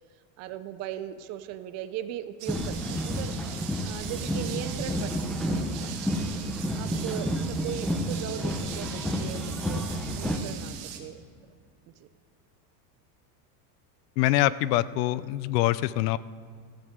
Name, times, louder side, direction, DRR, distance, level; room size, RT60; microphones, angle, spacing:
voice 1, 0.4-3.3 3.8-5.2 5.5-6.1 6.7-9.8 10.1-11.2 12.0-12.1, right 11 dB, 35° right, 12 dB, 0.4 m, -38 dB
sound 1, 2.4-11.0, right 10 dB, 50° right, 1.5 m, -41 dB
sound 2, 2.5-10.4, equal, ahead, 0.7 m, -30 dB
voice 2, 14.2-16.2, left 15 dB, 80° left, 18 dB, 0.6 m, -24 dB
14.5 x 14.0 x 3.7 m, 2.1 s
supercardioid pair, 145°, 47 cm